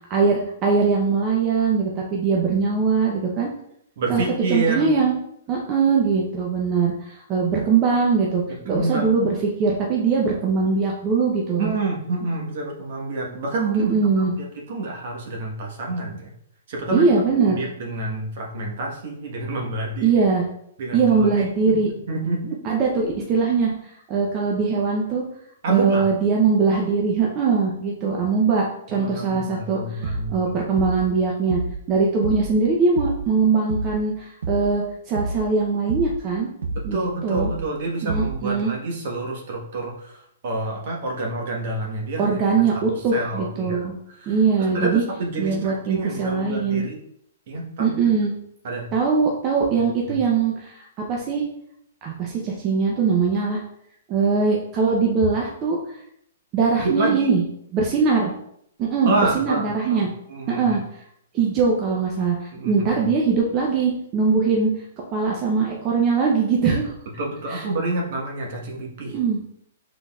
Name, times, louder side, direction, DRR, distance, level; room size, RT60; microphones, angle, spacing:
voice 1, 0.1-3.5 4.1-4.2 4.5-5.1 5.5-11.7 13.7-14.3 16.9-17.6 20.0-20.4 20.9-21.9 22.6-25.2 25.7-31.6 31.9-36.5 36.8-37.5 38.0-38.7 42.2-43.9 44.3-45.0 45.4-46.9 47.8-48.3 48.9-51.4 52.0-53.6 54.1-56.0 56.5-57.4 57.7-58.3 58.8-60.1 60.5-60.8 61.3-64.7 65.1-66.9 67.5-67.6 69.1-69.4, right 5 dB, 30° right, -2 dB, 0.7 m, -21 dB
voice 2, 4.0-4.9 8.7-9.2 11.6-16.3 16.7-17.1 17.5-20.1 20.8-21.5 22.1-22.6 25.6-26.1 28.9-30.5 36.7-43.9 44.2-47.0 47.5-47.9 48.6-48.9 50.1-50.2 56.8-57.3 59.0-60.8 62.5-63.1 67.2-69.2, right 2 dB, 55° right, -1 dB, 1.3 m, -28 dB
sound 1, 30.0-30.4 30.8-31.1 31.5-31.9 32.2-32.6 33.0-33.3 33.7-34.1 34.4-34.8 35.1-35.5 35.9-36.3 36.6-37.0 37.3-37.7 38.1-38.5, right 3 dB, 80° right, 0.5 m, -29 dB
5.5 x 3.8 x 2.4 m, 0.72 s
hypercardioid pair, 145°, 0 cm